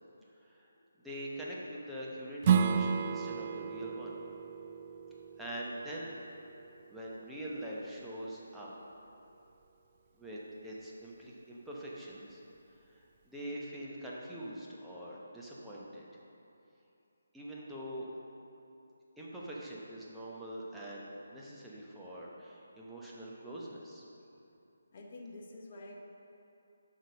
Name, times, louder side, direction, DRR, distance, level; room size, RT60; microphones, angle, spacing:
voice 1, 1.0-4.1 5.4-6.2 6.9-8.7 10.2-12.4 12.9-16.1 17.3-18.1 19.2-24.0, right 1 dB, ahead, -7 dB, 1.0 m, -44 dB
Strum, 2.4-7.6, right 7 dB, 30° right, 0.3 m, -33 dB
voice 2, 24.9-26.0, left 2 dB, 35° left, 0 dB, 1.0 m, -48 dB
7.9 x 6.5 x 5.2 m, 2.8 s
figure-of-eight pair, 145°, 0 cm